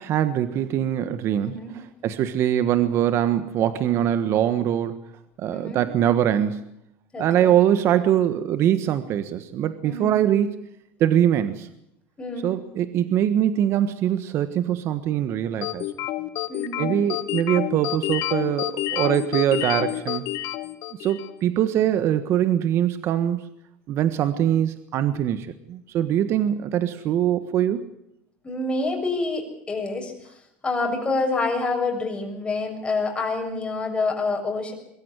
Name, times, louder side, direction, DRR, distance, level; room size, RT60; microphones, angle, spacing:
voice 1, 0.0-5.0 5.4-6.6 7.2-10.7 11.0-11.7 12.4-15.9 16.8-20.3 20.9-23.4 23.9-27.9, right 10 dB, 50° right, 11 dB, 1.4 m, -23 dB
voice 2, 5.5-5.8 7.1-7.5 9.8-10.1 12.2-12.5 16.5-16.9 28.4-30.1 30.6-34.7, left 3 dB, 20° left, 2 dB, 6.8 m, -27 dB
sound 1, 15.6-21.4, left 15 dB, 60° left, 1.3 m, -28 dB
23.0 x 14.0 x 9.8 m, 0.78 s
supercardioid pair, 115°, 6 cm